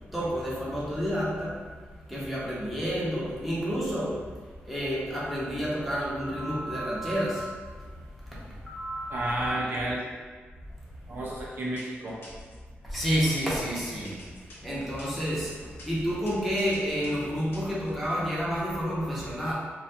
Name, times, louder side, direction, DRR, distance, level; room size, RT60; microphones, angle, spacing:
voice 1, 0.1-1.8 2.1-9.5 11.0-11.1 12.8-15.6 15.9-19.5, equal, ahead, -7 dB, 0.6 m, -30 dB
voice 2, 9.1-10.0 11.1-12.2, right 1 dB, 55° right, -3 dB, 0.4 m, -31 dB
sound 1, 10.7-11.1 11.6-12.6 13.1-18.1, left 1 dB, 60° left, 0.7 m, -48 dB
2.6 x 2.3 x 2.6 m, 1.5 s
wide cardioid pair, 160°, 4 cm